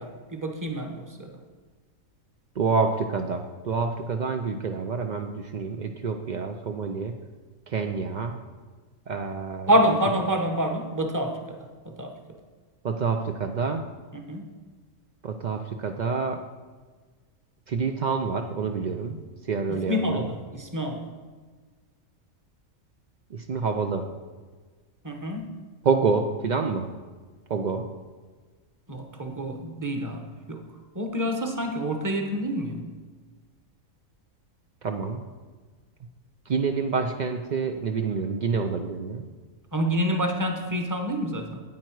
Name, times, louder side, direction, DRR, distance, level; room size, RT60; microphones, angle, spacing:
voice 1, 0.0-1.3 9.7-11.6 11.8-12.1 14.1-14.5 19.7-21.1 25.0-25.5 28.9-30.6 30.9-32.9 39.7-41.6, equal, 15° right, 4 dB, 0.9 m, -27 dB
voice 2, 2.6-7.1 7.7-8.4 9.1-9.7 12.8-13.9 15.2-16.4 17.7-19.2 19.5-20.3 23.3-24.1 25.8-26.9 27.5-27.9 34.8-35.2 36.5-39.2, right 5 dB, 70° right, 4 dB, 0.4 m, -27 dB
9.4 x 9.0 x 4.6 m, 1.4 s
omnidirectional pair, 1.5 m